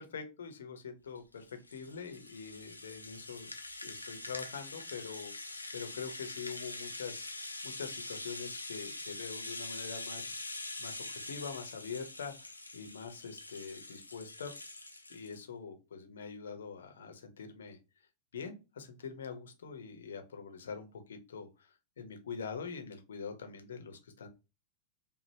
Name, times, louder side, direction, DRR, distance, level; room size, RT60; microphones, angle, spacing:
voice 1, 0.0-1.4 1.7-3.5 3.8-5.3 5.7-7.3 7.6-10.3 10.8-14.5 15.1-17.8 18.3-21.5 22.0-24.3, left 5 dB, 65° left, 6 dB, 0.9 m, -44 dB
Rattle (instrument), 1.2-15.4, left 2 dB, 85° left, 0.7 m, -44 dB
5.1 x 2.4 x 2.9 m, 0.27 s
figure-of-eight pair, 90°, 0 cm